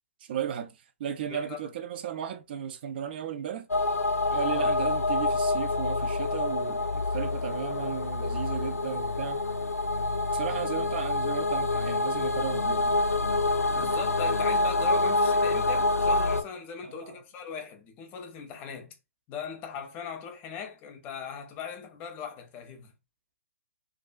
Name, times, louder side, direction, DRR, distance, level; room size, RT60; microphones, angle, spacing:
voice 1, 0.2-3.7 4.3-9.4 10.3-13.0 16.8-17.2, right 8 dB, 40° right, 0.3 m, -35 dB
voice 2, 1.3-1.6 4.5-4.8 13.7-19.0 19.3-22.9, left 6 dB, 20° left, 0.5 m, -39 dB
sound 1, 3.7-16.4, left 2 dB, 90° left, 0.4 m, -27 dB
2.4 x 2.2 x 2.2 m
figure-of-eight pair, 125°, 8 cm